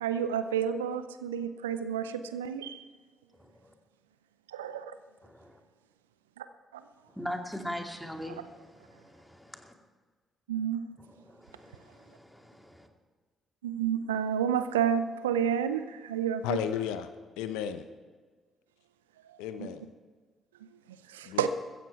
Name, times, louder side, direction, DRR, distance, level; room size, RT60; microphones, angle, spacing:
voice 1, 0.0-2.0 2.3-2.6 4.6-4.7 10.5-10.8 13.6-15.8 16.1-16.6 21.4-21.5, right 8 dB, 80° right, 0.5 m, -29 dB
voice 2, 3.4-3.7 5.3-5.6 7.2-8.4 8.9-9.7 11.3-12.9, equal, ahead, 2.4 m, -41 dB
voice 3, 16.4-17.9 19.4-19.8 21.2-21.5, left 9 dB, 70° left, 0.8 m, -34 dB
15.0 x 15.0 x 4.6 m
figure-of-eight pair, 45°, 0 cm